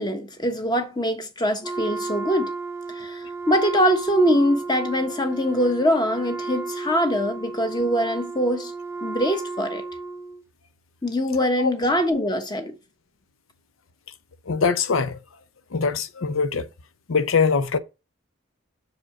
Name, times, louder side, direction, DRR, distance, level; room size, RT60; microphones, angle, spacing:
voice 1, 0.0-2.5 2.9-8.7 9.0-9.8 11.0-12.8, equal, 20° left, 1.1 m, -23 dB
Wind instrument woodwind instrument, 1.6-10.4, right 3 dB, 15° right, 0.4 m, -33 dB
voice 2, 14.5-15.2 15.7-16.6 17.1-17.8, left 5 dB, 85° left, 0.7 m, -22 dB
6.3 x 4.9 x 5.9 m
head